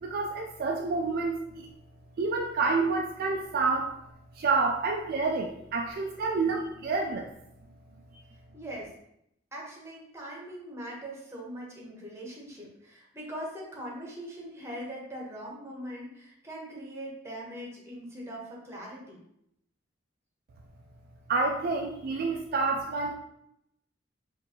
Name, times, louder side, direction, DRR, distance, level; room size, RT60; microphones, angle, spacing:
voice 1, 0.0-1.7 2.2-3.9 4.4-7.3 21.3-23.1, right 3 dB, 50° right, 2 dB, 0.3 m, -28 dB
voice 2, 8.5-8.9 9.5-19.2, equal, 15° right, -3 dB, 1.0 m, -41 dB
5.1 x 2.6 x 2.8 m, 0.78 s
head